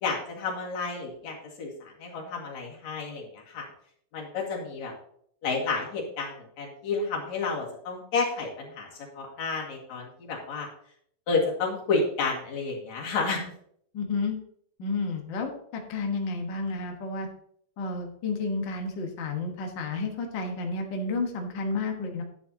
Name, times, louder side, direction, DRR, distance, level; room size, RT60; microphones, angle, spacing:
voice 1, 0.0-3.6 4.1-4.9 5.4-8.9 9.2-10.7 11.3-13.4, left 4 dB, 55° left, -1 dB, 3.1 m, -30 dB
voice 2, 13.9-14.4 14.8-17.3 17.8-22.2, left 3 dB, 80° left, 2 dB, 1.0 m, -31 dB
11.0 x 9.3 x 2.8 m, 0.65 s
omnidirectional pair, 4.2 m